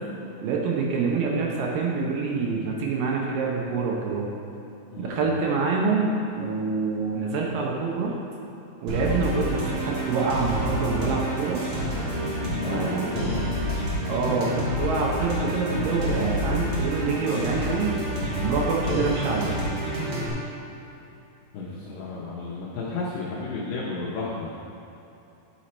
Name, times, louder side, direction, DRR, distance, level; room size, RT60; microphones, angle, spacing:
voice 1, 0.4-4.3 5.0-6.1 6.4-8.2 8.8-11.6 12.6-13.1 14.0-18.0 18.4-19.6, right 4 dB, 75° right, -2 dB, 2.4 m, -26 dB
voice 2, 4.9-5.4 12.5-13.5 21.5-24.5, left 3 dB, 75° left, -5 dB, 2.4 m, -33 dB
sound 1, 8.9-20.3, equal, 50° right, 1.5 m, -28 dB
10.5 x 4.6 x 4.2 m, 2.9 s
omnidirectional pair, 4.2 m